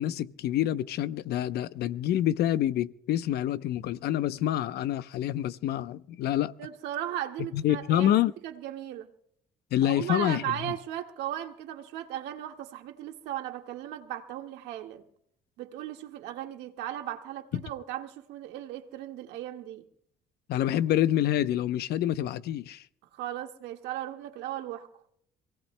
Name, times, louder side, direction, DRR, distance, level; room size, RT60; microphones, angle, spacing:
voice 1, 0.0-6.5 7.5-8.3 9.7-10.7 20.5-22.8, left 12 dB, 70° left, 0.7 m, -27 dB
voice 2, 6.6-8.1 8.4-9.1 9.8-15.0 15.6-19.9 23.1-24.9, right 12 dB, 90° right, 1.7 m, -37 dB
27.5 x 17.5 x 2.2 m
cardioid pair, 110°, 17 cm